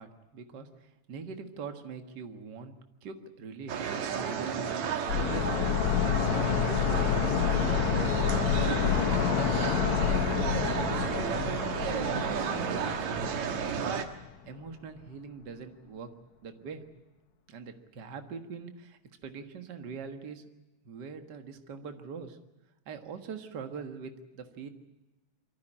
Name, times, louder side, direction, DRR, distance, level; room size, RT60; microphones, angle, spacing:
voice 1, 0.0-2.7 3.0-3.8 4.2-4.6 5.0-9.8 10.3-14.0 14.5-16.1 16.4-16.8 17.5-20.4 20.8-22.4 22.9-24.7, right 5 dB, 45° right, 7 dB, 1.8 m, -43 dB
sound 1, 3.7-14.1, right 6 dB, 75° right, 2.8 m, -32 dB
sound 2, 5.1-13.8 14.1-14.2, left 9 dB, 70° left, 2.5 m, -29 dB
23.5 x 15.0 x 10.0 m, 1.1 s
omnidirectional pair, 3.3 m